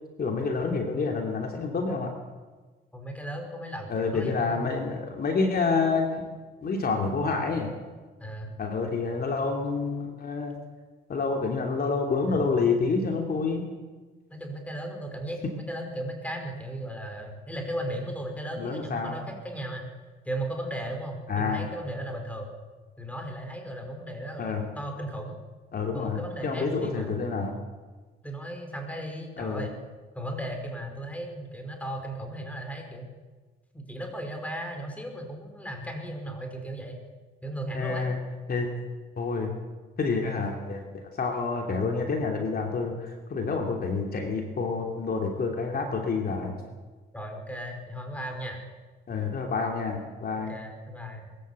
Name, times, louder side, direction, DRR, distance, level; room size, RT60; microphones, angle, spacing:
voice 1, 0.2-2.1 3.9-6.1 6.6-7.7 8.6-10.5 11.1-13.7 18.6-19.2 21.3-21.7 24.4-24.6 25.7-27.5 29.4-29.7 37.7-38.2 38.5-38.7 39.2-39.5 40.0-46.6 49.1-50.5, left 4 dB, 50° left, 2 dB, 2.9 m, -28 dB
voice 2, 2.9-4.7 8.2-8.5 12.3-12.4 14.3-15.4 15.7-19.9 20.2-22.5 23.0-25.4 25.9-27.2 28.2-29.8 30.1-33.1 33.7-37.0 37.4-38.1 47.1-48.6 50.5-51.3, right 1 dB, 5° left, 3 dB, 5.3 m, -36 dB
22.0 x 14.0 x 8.4 m, 1.3 s
cardioid pair, 90°, 20 cm